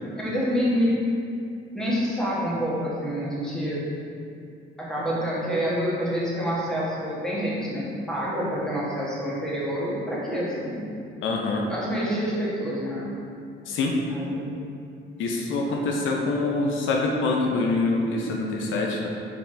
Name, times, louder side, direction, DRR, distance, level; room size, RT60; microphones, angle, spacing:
voice 1, 0.1-1.0 1.7-3.8 4.8-10.9 11.7-13.1 14.1-14.6, equal, 5° left, -7 dB, 1.1 m, -27 dB
voice 2, 11.2-11.7 13.7-14.0 15.2-19.1, left 3 dB, 80° left, -1 dB, 0.5 m, -25 dB
4.8 x 3.5 x 2.6 m, 2.5 s
cardioid pair, 90°, 20 cm